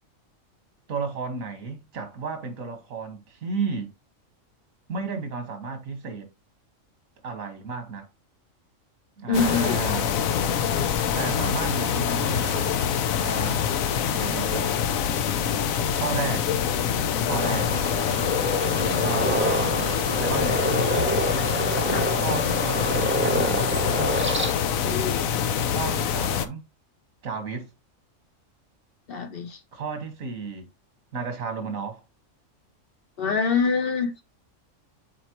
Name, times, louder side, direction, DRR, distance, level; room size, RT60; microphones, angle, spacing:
voice 1, 0.9-3.9 4.9-6.3 7.2-8.1 9.2-10.1 11.2-12.7 13.2-13.7 14.1-14.8 15.9-16.5 17.2-17.7 19.0-20.7 22.1-23.7 25.6-26.7 27.2-27.7 29.7-30.7 31.1-32.0, right 4 dB, 85° right, 1.9 m, -33 dB
sound 1, 9.3-26.5, left 8 dB, 85° left, 1.1 m, -25 dB
voice 2, 9.3-9.8 18.8-18.9 21.9-22.1 24.8-25.3 29.1-29.6 33.2-34.2, left 5 dB, 50° left, 0.9 m, -25 dB
sound 2, 17.3-24.5, right 1 dB, 15° right, 0.5 m, -28 dB
7.6 x 4.2 x 2.9 m
omnidirectional pair, 1.4 m